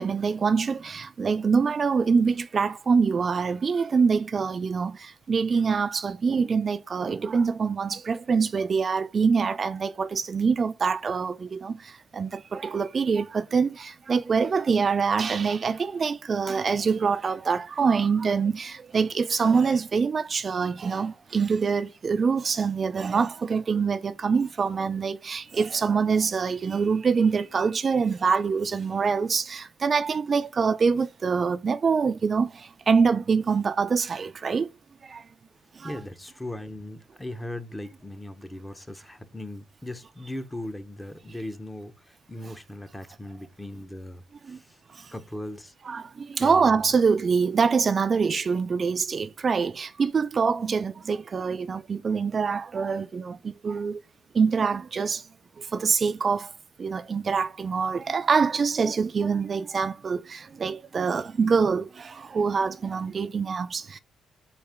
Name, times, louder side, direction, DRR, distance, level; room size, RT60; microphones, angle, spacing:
voice 1, 0.0-34.7 35.0-35.2 35.8-35.9 44.5-44.6 44.9-45.1 45.9-54.0 54.3-55.2 55.6-56.5 56.8-64.0, right 5 dB, 40° right, 0.4 m, -25 dB
voice 2, 35.8-44.8 45.1-45.7 46.4-46.9, left 1 dB, 10° left, 0.7 m, -38 dB
4.3 x 2.9 x 3.4 m
cardioid pair, 90°, 0 cm